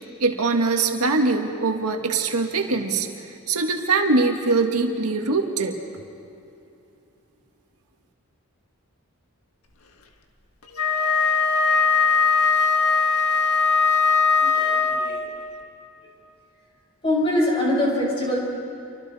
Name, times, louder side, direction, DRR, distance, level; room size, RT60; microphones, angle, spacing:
voice 1, 0.2-5.8, right 3 dB, 90° right, 3 dB, 1.8 m, -22 dB
Wind instrument woodwind instrument, 10.7-15.3, left 5 dB, 85° left, 1.6 m, -20 dB
voice 2, 14.4-15.3 17.0-18.4, left 1 dB, 25° left, -3 dB, 6.3 m, -23 dB
29.5 x 24.5 x 4.2 m, 2.8 s
head